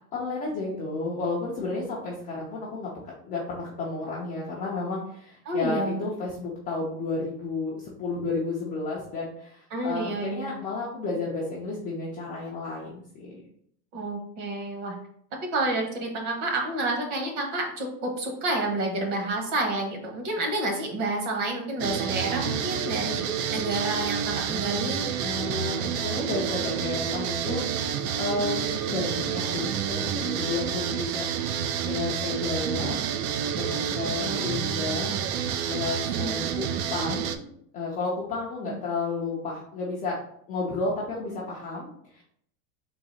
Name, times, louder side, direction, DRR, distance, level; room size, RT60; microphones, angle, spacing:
voice 1, 0.1-13.4 25.2-31.3 31.8-35.2 35.6-40.2 40.5-42.2, left 3 dB, 20° left, -6 dB, 0.3 m, -32 dB
voice 2, 5.4-6.0 9.7-10.6 13.9-14.9 15.4-23.2 23.5-25.0 34.2-34.5 36.1-36.5 38.6-38.8, right 2 dB, 40° right, 2 dB, 1.1 m, -29 dB
sound 1, 21.8-37.4, right 8 dB, 75° right, 0.6 m, -29 dB
3.9 x 2.7 x 4.1 m, 0.67 s
supercardioid pair, 160°, 44 cm